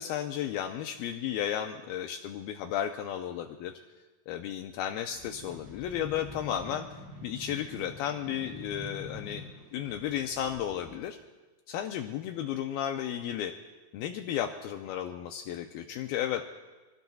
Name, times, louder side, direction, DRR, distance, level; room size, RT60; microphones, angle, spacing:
voice 1, 0.0-3.7 4.3-6.9 7.2-9.4 9.7-11.2 11.7-13.5 13.9-16.4, left 10 dB, 85° left, 5 dB, 2.1 m, -33 dB
sound 1, 5.1-11.0, left 2 dB, 45° right, 6.2 m, -46 dB
26.0 x 17.5 x 2.3 m, 1.2 s
omnidirectional pair, 4.9 m